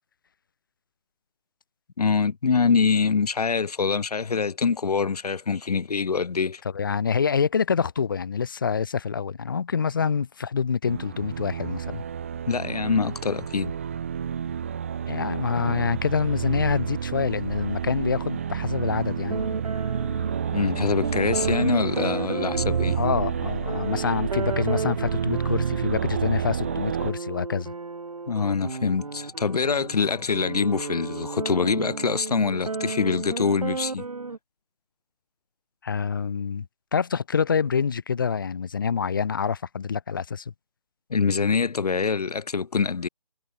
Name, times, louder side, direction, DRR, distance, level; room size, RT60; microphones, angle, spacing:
voice 1, 2.0-6.6 12.5-13.7 15.6-15.7 20.5-23.0 28.3-34.1 41.1-43.1, left 5 dB, 85° left, 0.7 m, -24 dB
voice 2, 6.7-12.0 15.1-19.4 22.9-27.7 35.8-36.7 36.9-40.5, left 6 dB, 35° left, 0.9 m, -26 dB
sound 1, 10.8-27.1, right 8 dB, 20° right, 0.9 m, -30 dB
sound 2, 19.3-34.4, right 4 dB, 70° right, 6.5 m, -33 dB
hypercardioid pair, 170°, 19 cm